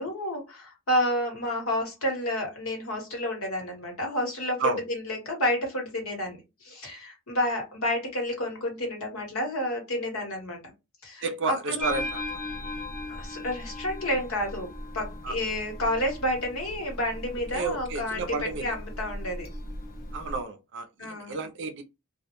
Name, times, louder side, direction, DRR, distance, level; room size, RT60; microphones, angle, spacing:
voice 1, 0.0-10.7 11.0-11.9 13.1-14.7 14.9-19.5 21.0-21.3, left 1 dB, 85° left, 1.1 m, -30 dB
voice 2, 11.2-12.2 15.2-15.3 17.5-18.7 20.1-21.8, right 4 dB, 55° right, 0.4 m, -31 dB
sound 1, 11.8-20.4, left 1 dB, 45° left, 0.4 m, -38 dB
2.2 x 2.1 x 2.9 m
head